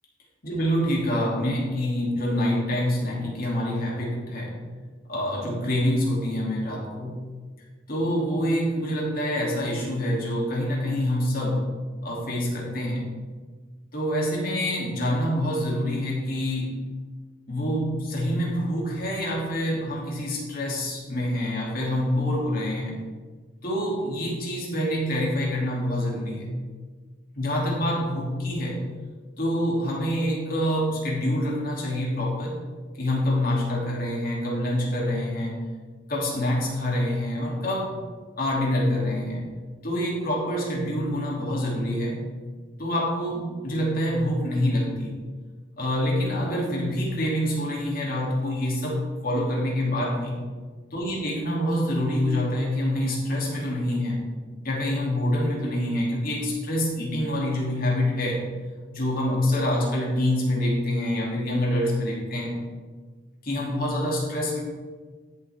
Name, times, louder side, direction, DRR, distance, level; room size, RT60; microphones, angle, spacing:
voice 1, 0.4-4.6 5.1-7.2 7.9-11.7 12.0-13.1 13.9-16.7 17.5-23.0 23.6-26.5 27.4-28.8 29.4-32.6 33.0-35.7 36.1-37.9 38.4-39.4 39.8-42.2 42.8-45.2 45.8-50.4 50.9-54.2 54.6-58.4 58.9-62.5 63.4-64.6, left 1 dB, 50° left, -3 dB, 2.7 m, -26 dB
13.0 x 7.4 x 3.5 m, 1.5 s
head